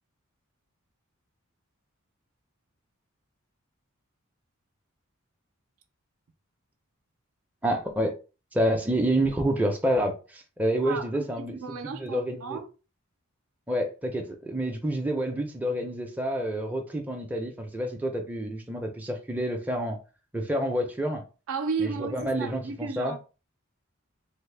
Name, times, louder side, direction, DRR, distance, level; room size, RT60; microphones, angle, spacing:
voice 1, 7.6-8.1 8.5-11.5 11.8-12.6 13.7-20.0 20.3-21.2 21.8-23.1, right 1 dB, 5° right, 0.5 m, -28 dB
voice 2, 10.8-12.7 21.5-23.2, right 5 dB, 70° right, 0.5 m, -33 dB
3.2 x 2.1 x 3.2 m
head